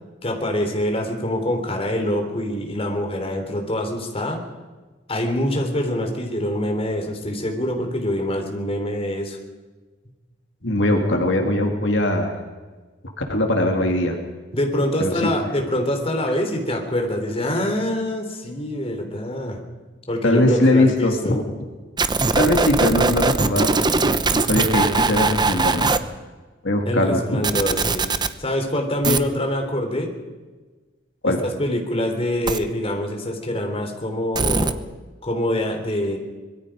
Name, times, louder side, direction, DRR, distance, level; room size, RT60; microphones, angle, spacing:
voice 1, 0.2-4.4 5.1-9.4 14.5-19.6 20.1-21.3 26.9-28.0 28.4-30.1 31.2-34.8 35.2-36.2, left 1 dB, 30° left, 3 dB, 3.6 m, -25 dB
voice 2, 10.6-12.3 13.3-14.2 15.0-15.1 20.2-21.4 22.4-23.7 24.0-25.9 26.6-27.5 29.1-29.2 31.2-31.4, left 1 dB, 70° left, 2 dB, 3.0 m, -20 dB
sound 1, 22.0-26.0 27.4-28.3 29.0-29.2 32.5-32.6 34.3-34.7, right 3 dB, 25° right, 0.9 m, -20 dB
25.5 x 21.5 x 5.1 m, 1.3 s
head